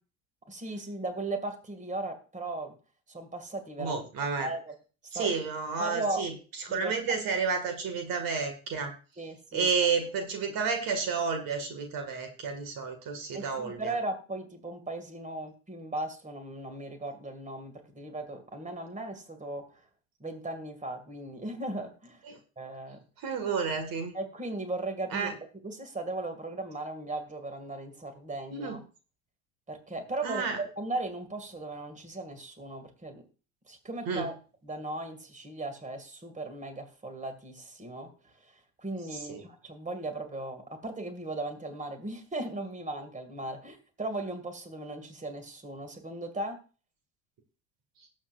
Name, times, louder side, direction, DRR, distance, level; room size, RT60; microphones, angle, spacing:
voice 1, 0.5-2.7 3.1-4.0 4.4-4.7 5.1-5.3 5.8-6.2 6.7-6.9 9.2-9.7 13.3-19.6 20.2-22.2 22.6-23.0 24.1-25.3 25.6-28.8 29.7-33.2 33.7-34.3 34.6-38.1 38.4-38.5 38.8-46.6, right 2 dB, 20° right, 7 dB, 2.3 m, -37 dB
voice 2, 3.8-4.5 5.1-6.3 6.7-8.9 9.5-13.9 22.3-22.4 23.2-24.1 25.1-25.3 28.5-28.8 30.2-30.6 34.1-34.3 39.1-39.4, right 5 dB, 50° right, 6 dB, 2.2 m, -31 dB
19.5 x 7.4 x 2.6 m, 0.36 s
hypercardioid pair, 70°, 42 cm